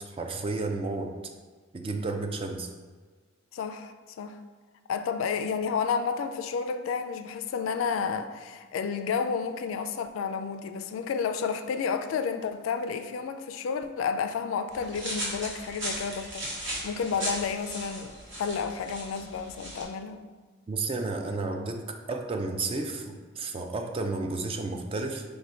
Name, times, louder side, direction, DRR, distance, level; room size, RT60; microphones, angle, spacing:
voice 1, 0.1-1.1 1.7-2.7 20.7-25.2, right 3 dB, 30° right, 4 dB, 0.3 m, -32 dB
voice 2, 3.5-4.4 4.9-20.2, left 6 dB, 75° left, 10 dB, 0.3 m, -31 dB
sound 1, 14.7-19.8, right 1 dB, 65° right, 1.2 m, -37 dB
4.8 x 2.2 x 4.3 m, 1.5 s
head